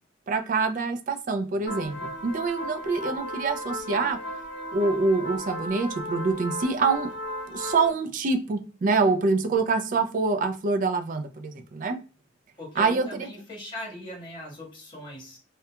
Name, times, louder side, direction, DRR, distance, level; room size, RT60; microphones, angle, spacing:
voice 1, 0.3-4.2 4.7-7.1 7.5-12.0 12.8-13.3, right 4 dB, 40° right, 7 dB, 0.3 m, -25 dB
sound 1, 1.7-7.9, equal, 60° left, 0.6 m, -35 dB
voice 2, 12.6-15.4, left 1 dB, 25° left, -2 dB, 1.0 m, -40 dB
2.4 x 2.1 x 2.7 m, 0.34 s
head